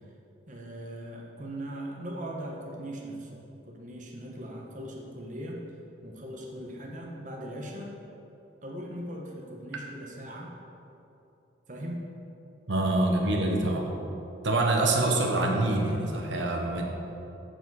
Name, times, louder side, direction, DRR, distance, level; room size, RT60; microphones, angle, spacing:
voice 1, 0.5-5.6 6.0-7.9 8.6-10.5 11.7-12.0 12.9-13.0, right 1 dB, 45° right, -1 dB, 1.1 m, -39 dB
voice 2, 12.7-13.9 14.4-16.8, right 2 dB, 75° right, 1 dB, 1.1 m, -25 dB
14.0 x 4.8 x 4.8 m, 2.9 s
head